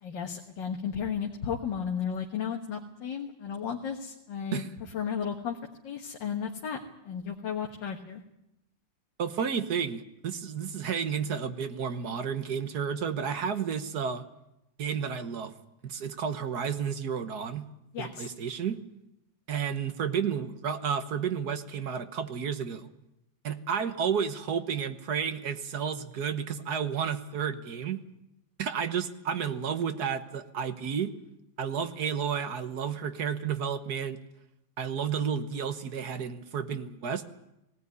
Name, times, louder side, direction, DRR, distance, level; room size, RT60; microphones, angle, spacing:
voice 1, 0.0-4.6 4.9-5.6 5.8-6.8 7.0-8.2 17.9-18.3, left 7 dB, 75° left, 1 dB, 2.1 m, -34 dB
voice 2, 9.2-14.2 14.8-15.5 15.8-17.7 18.0-18.8 19.5-22.9 23.4-28.0 28.6-31.1 31.6-34.2 34.8-37.2, right 7 dB, 60° right, 9 dB, 1.7 m, -31 dB
19.0 x 17.5 x 9.6 m, 0.88 s
omnidirectional pair, 2.0 m